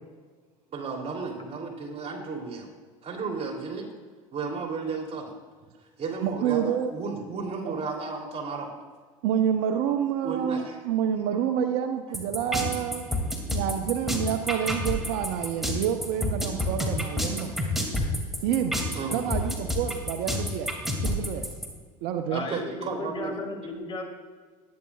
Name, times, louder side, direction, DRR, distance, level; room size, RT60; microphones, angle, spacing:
voice 1, 0.7-2.7 3.0-3.9 4.3-5.3 6.0-8.7 10.2-10.8 18.9-19.4 22.3-23.4, right 4 dB, 35° right, 1 dB, 3.0 m, -33 dB
voice 2, 6.2-6.9 7.7-7.8 9.2-13.0 13.5-17.5 18.4-18.7 19.1-20.7 21.0-21.4 22.0-22.5, right 9 dB, 60° right, 7 dB, 0.8 m, -28 dB
sound 1, 12.1-21.7, left 1 dB, ahead, 2.5 m, -28 dB
voice 3, 22.3-24.0, left 3 dB, 30° left, 0 dB, 3.4 m, -35 dB
20.5 x 9.5 x 2.4 m, 1.5 s
hypercardioid pair, 75°, 18 cm